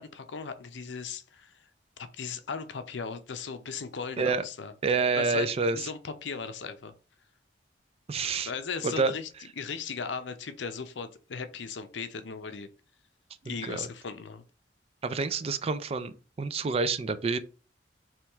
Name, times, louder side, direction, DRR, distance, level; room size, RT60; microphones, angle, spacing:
voice 1, 0.0-1.5 2.0-4.7 5.1-5.5 5.7-6.9 8.5-12.7 13.4-14.4, left 5 dB, 75° left, 0.6 m, -37 dB
voice 2, 4.8-5.9 8.1-8.5 8.8-9.1 13.5-13.9 15.0-17.4, right 4 dB, 35° right, 0.4 m, -28 dB
4.5 x 3.1 x 3.4 m
head